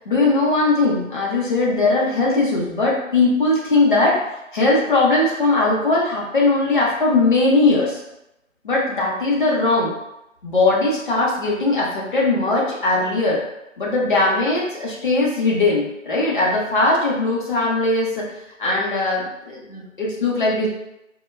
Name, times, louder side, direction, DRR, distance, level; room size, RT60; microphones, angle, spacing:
voice 1, 0.1-4.2 4.5-8.0 8.6-9.9 10.4-13.4 13.8-18.3 18.6-20.7, left 2 dB, 40° left, -4 dB, 0.7 m, -19 dB
2.7 x 2.2 x 3.2 m, 0.89 s
figure-of-eight pair, 150°, 40 cm